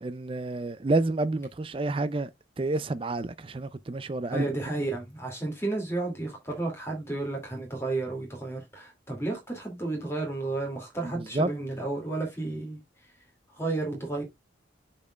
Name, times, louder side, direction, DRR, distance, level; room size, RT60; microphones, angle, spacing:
voice 1, 0.0-2.3 2.6-4.5 11.1-11.5, right 2 dB, 30° right, 0.4 m, -29 dB
voice 2, 4.3-12.8 13.6-14.2, right 2 dB, 15° left, 2.2 m, -32 dB
11.5 x 4.3 x 2.3 m
head